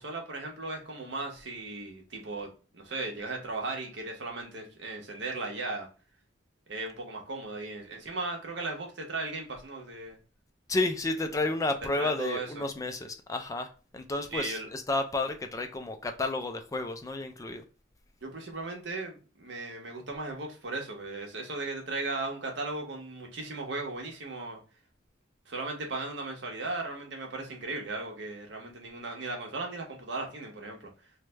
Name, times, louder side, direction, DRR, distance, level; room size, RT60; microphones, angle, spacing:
voice 1, 0.0-5.9 6.7-10.2 12.0-12.7 14.3-14.7 18.2-24.6 25.5-30.9, right 2 dB, 65° right, 1 dB, 0.9 m, -37 dB
voice 2, 10.7-13.7 13.9-17.6, left 2 dB, 15° left, 6 dB, 0.3 m, -31 dB
3.2 x 2.1 x 3.2 m, 0.36 s
head